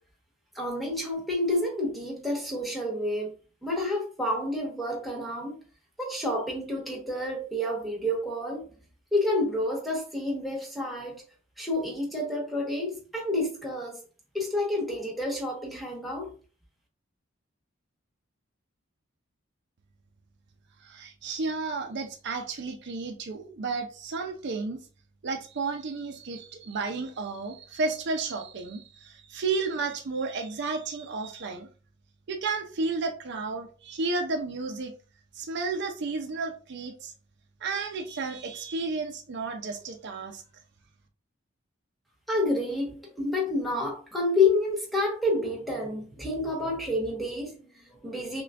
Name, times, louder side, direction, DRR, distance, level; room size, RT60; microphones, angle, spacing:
voice 1, 0.5-3.3 3.6-5.6 6.0-8.8 9.1-11.2 11.6-14.0 14.3-16.3 42.3-48.4, left 2 dB, ahead, 1.2 m, -29 dB
voice 2, 20.8-24.8 25.2-31.7 32.3-34.9 35.3-37.1 37.6-40.4, right 3 dB, 60° right, 0.5 m, -32 dB
5.8 x 2.2 x 2.4 m
head